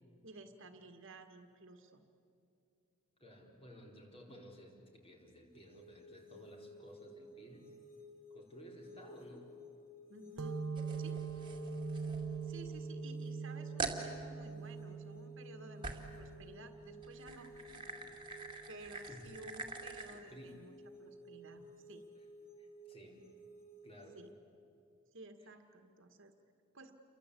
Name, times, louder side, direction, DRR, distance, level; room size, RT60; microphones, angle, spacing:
voice 1, 0.2-2.0 4.2-4.4 10.1-10.6 11.0-11.2 12.4-17.9 18.7-20.7 21.0-21.6 21.9-22.0 24.1-24.3 25.1-26.3 26.7-26.9, right 2 dB, 60° right, 6 dB, 1.8 m, -55 dB
voice 2, 3.2-7.7 8.3-9.5 18.1-18.2 19.1-19.3 20.1-20.6 21.5-21.7 22.6-23.2 23.8-24.2, equal, 25° left, 0 dB, 4.4 m, -56 dB
sound 1, 5.5-24.3, equal, 40° left, 4.6 m, -55 dB
sound 2, 10.4-17.7, right 5 dB, 75° right, 1.2 m, -43 dB
sound 3, 10.8-12.8 13.2-13.3 13.8-14.1 15.8-16.2 17.0-20.2, right 3 dB, 20° right, 2.5 m, -45 dB
29.5 x 24.0 x 8.5 m, 2.7 s
head